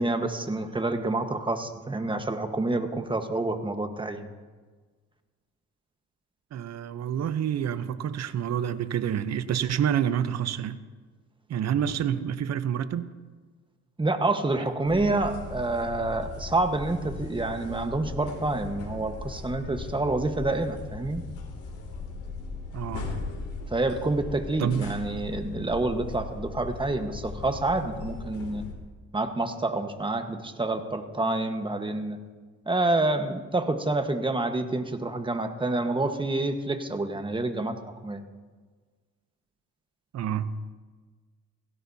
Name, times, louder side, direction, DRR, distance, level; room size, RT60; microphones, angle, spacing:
voice 1, 0.0-4.3 14.0-21.2 23.7-28.7 29.1-32.2 32.7-38.2, right 2 dB, 15° right, 1.3 m, -28 dB
voice 2, 6.5-10.8 11.5-13.1 22.7-23.2 24.6-24.9 40.1-40.6, right 9 dB, 60° right, 0.8 m, -28 dB
sound 1, 14.8-28.7, left 4 dB, 85° left, 2.7 m, -38 dB
17.5 x 16.5 x 2.8 m
cardioid pair, 90°, 30 cm